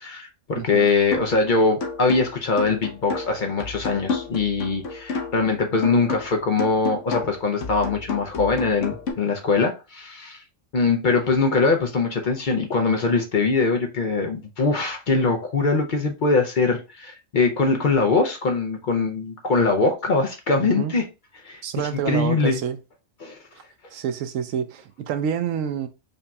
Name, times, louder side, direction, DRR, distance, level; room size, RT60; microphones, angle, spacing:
voice 1, 0.0-10.4 10.7-21.1 21.4-21.6 22.0-22.6 23.2-23.4, left 4 dB, 50° left, 0.7 m, -22 dB
voice 2, 0.5-0.9 20.7-20.9 21.6-22.8 23.9-25.9, right 8 dB, 85° right, 1.0 m, -28 dB
sound 1, 1.1-1.4 1.8-5.5 5.8-9.1, left 4 dB, 70° left, 1.2 m, -31 dB
5.2 x 2.7 x 2.2 m
omnidirectional pair, 1.3 m